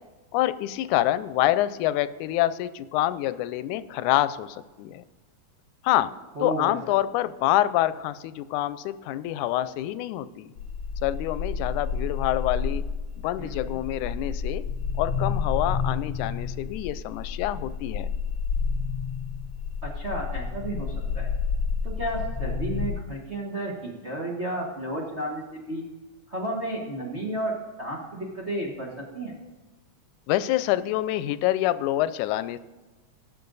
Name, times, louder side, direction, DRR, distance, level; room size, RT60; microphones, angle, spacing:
voice 1, 0.3-5.0 5.8-6.1 6.4-10.5 11.0-12.8 13.2-14.6 15.0-18.1 30.3-32.6, left 14 dB, 90° left, 15 dB, 2.0 m, -26 dB
voice 2, 6.3-6.8 13.4-13.8 19.8-21.3 21.8-25.8 26.3-29.3, right 1 dB, 35° right, -3 dB, 1.2 m, -32 dB
sound 1, 10.6-22.9, left 5 dB, 60° left, 1.6 m, -30 dB
17.5 x 6.6 x 4.0 m, 1.2 s
omnidirectional pair, 3.4 m